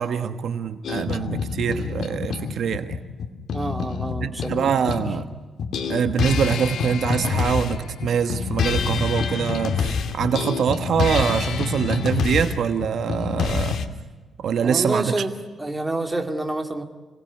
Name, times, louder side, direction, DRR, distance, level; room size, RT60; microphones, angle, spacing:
voice 1, 0.0-3.0 4.2-5.3 5.9-13.8 14.4-15.2, right 7 dB, 55° right, 9 dB, 1.3 m, -24 dB
sound 1, 0.8-5.3 5.6-13.9, left 6 dB, 60° left, 2.2 m, -26 dB
voice 2, 3.5-5.0 14.6-15.3 15.6-16.8, right 2 dB, 10° right, 5 dB, 2.3 m, -28 dB
29.5 x 20.0 x 9.8 m, 1.3 s
cardioid pair, 160°, 0 cm